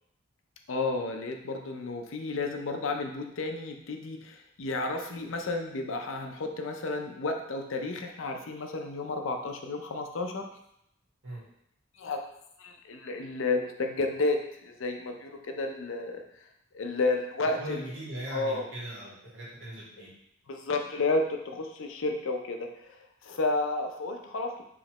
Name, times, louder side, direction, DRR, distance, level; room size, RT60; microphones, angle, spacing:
voice 1, 0.7-10.5 12.0-12.3 12.6-16.2 16.7-17.9 18.3-18.6 20.0-20.1 20.5-24.6, left 3 dB, 75° left, 4 dB, 0.5 m, -32 dB
voice 2, 17.6-20.1, right 1 dB, 70° right, -6 dB, 1.7 m, -39 dB
5.0 x 3.1 x 3.0 m, 0.76 s
head